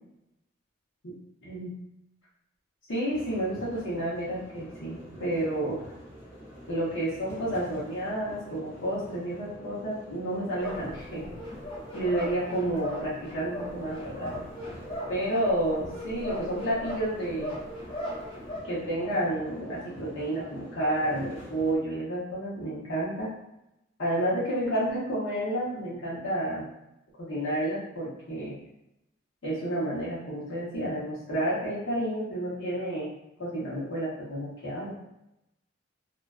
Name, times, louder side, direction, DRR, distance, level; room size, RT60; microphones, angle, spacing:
voice 1, 2.9-5.8 6.7-11.2 11.9-14.3 15.1-17.6 18.6-23.3 24.0-26.7 27.2-28.5 29.4-33.1 33.4-34.9, right 1 dB, 65° left, -8 dB, 0.9 m, -30 dB
sound 1, 3.1-21.8, equal, 25° right, 0.6 m, -47 dB
sound 2, 10.6-18.6, equal, 25° left, 0.6 m, -38 dB
2.4 x 2.2 x 2.3 m, 0.85 s
head